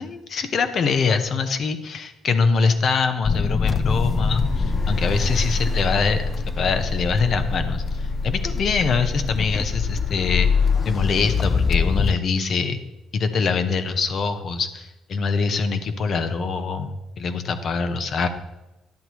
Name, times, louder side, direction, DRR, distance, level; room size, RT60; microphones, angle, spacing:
voice 1, 0.0-6.3 6.6-10.5 10.8-12.8 13.1-18.3, left 5 dB, 55° left, 8 dB, 0.9 m, -24 dB
sound 1, 3.2-12.2, left 4 dB, 35° left, 0.3 m, -24 dB
10.5 x 8.0 x 3.1 m, 0.99 s
supercardioid pair, 65°, 0 cm